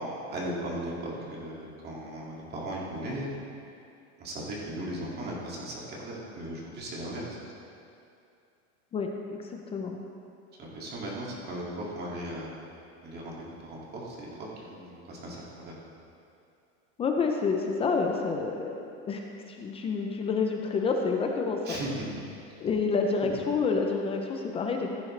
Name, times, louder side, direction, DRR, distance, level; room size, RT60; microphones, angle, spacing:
voice 1, 0.3-3.3 4.2-7.3 10.6-12.5 13.0-14.3 14.7-15.7 21.7-22.0 23.2-23.4, right 1 dB, 25° right, -4 dB, 2.3 m, -37 dB
voice 2, 8.9-10.0 17.0-21.8 22.6-24.9, left 4 dB, 15° left, 2 dB, 0.4 m, -29 dB
15.5 x 9.7 x 3.2 m, 2.6 s
supercardioid pair, 155°, 37 cm